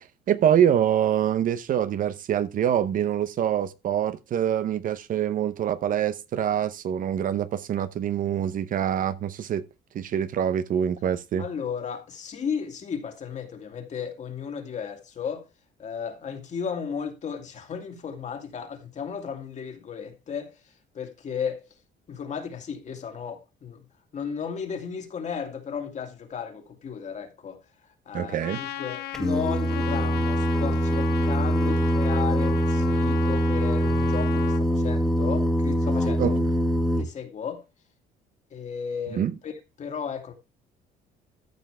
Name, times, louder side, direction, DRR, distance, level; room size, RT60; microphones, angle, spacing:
voice 1, 0.0-9.6 9.9-11.4 28.1-28.6 36.2-36.4 39.1-39.3, right 9 dB, 55° right, 0.8 m, -25 dB
voice 2, 11.4-15.4 15.8-20.6 20.9-21.6 22.1-23.9 24.1-27.6 28.1-36.4 37.0-37.6 38.5-40.3, left 7 dB, 45° left, 2.4 m, -34 dB
Trumpet, 28.4-34.6, left 12 dB, 75° left, 0.9 m, -37 dB
Singing, 29.1-37.0, equal, 5° left, 1.8 m, -23 dB
14.0 x 5.8 x 3.3 m
cardioid pair, 110°, 17 cm